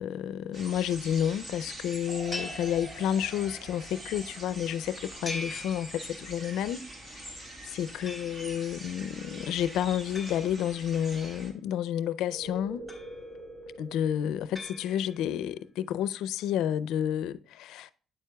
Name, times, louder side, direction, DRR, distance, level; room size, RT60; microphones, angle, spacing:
voice 1, 0.0-12.8 13.8-17.9, left 10 dB, 85° left, 0.4 m, -30 dB
sound 1, 0.5-11.5, right 1 dB, 35° right, 1.8 m, -44 dB
sound 2, 2.1-5.4 12.3-15.1, right 1 dB, 55° right, 2.8 m, -46 dB
sound 3, 2.3-3.5 5.2-6.5 8.1-8.8 10.1-11.3 12.9-13.6 14.5-15.4, left 1 dB, 5° right, 3.7 m, -43 dB
9.3 x 7.6 x 2.3 m
cardioid pair, 105°, 0 cm